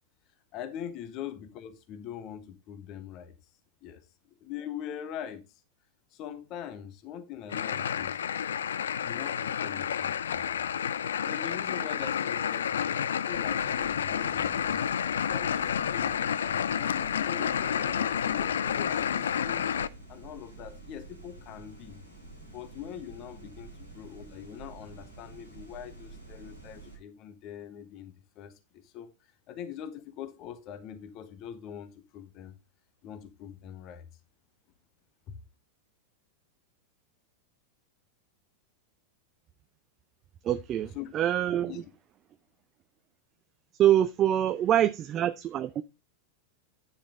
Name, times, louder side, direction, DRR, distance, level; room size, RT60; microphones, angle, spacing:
voice 1, 0.5-3.3 3.8-4.0 4.4-5.4 6.1-8.2 9.0-10.7 11.2-14.8 15.3-19.7 20.1-22.0 22.5-28.5 28.8-29.1 29.5-32.5 33.0-34.1 35.3-35.4 40.9-41.1 41.6-41.8, left 9 dB, 40° left, 1.3 m, -42 dB
sound 1, 7.5-19.9, left 8 dB, 65° left, 0.4 m, -30 dB
sound 2, 13.3-27.0, right 3 dB, 90° left, 3.3 m, -49 dB
voice 2, 40.4-41.8 43.7-45.8, right 11 dB, 30° right, 0.5 m, -25 dB
9.8 x 7.0 x 3.7 m
figure-of-eight pair, 90°, 0 cm